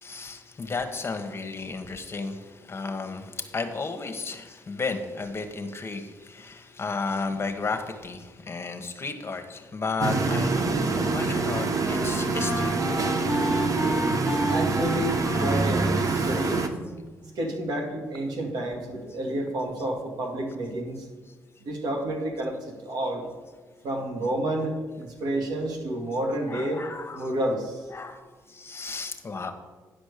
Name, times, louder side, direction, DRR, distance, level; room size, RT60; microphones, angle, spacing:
voice 1, 0.0-12.8 16.0-16.5 26.5-27.4 27.9-28.2 28.5-29.5, left 4 dB, 35° left, 7 dB, 1.2 m, -33 dB
sound 1, 10.0-16.7, right 3 dB, 50° right, 1.0 m, -25 dB
Wind instrument woodwind instrument, 10.8-17.5, equal, 5° right, 1.0 m, -32 dB
voice 2, 14.2-16.6 17.4-21.0 21.6-22.5 22.8-23.2 23.8-26.8 27.2-27.7, right 1 dB, 75° right, 1 dB, 2.1 m, -30 dB
10.0 x 5.2 x 6.6 m, 1.3 s
cardioid pair, 70°, 7 cm